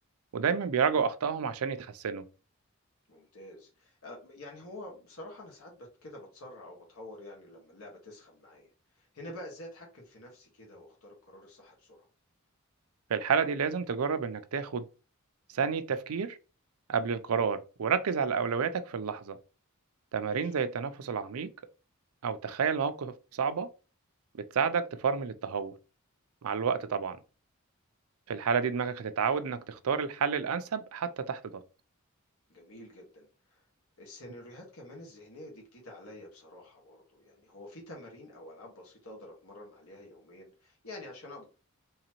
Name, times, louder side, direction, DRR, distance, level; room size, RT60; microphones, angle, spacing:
voice 1, 0.3-2.3 13.1-14.9 15.5-16.4 16.9-19.4 20.1-21.5 22.2-23.7 24.4-25.7 26.4-27.2 28.3-31.6, right 6 dB, 90° right, 0.5 m, -30 dB
voice 2, 3.1-8.7 9.0-12.0 20.2-20.5 32.5-33.6 34.0-41.4, left 1 dB, 85° left, 1.5 m, -48 dB
3.9 x 3.1 x 2.9 m
head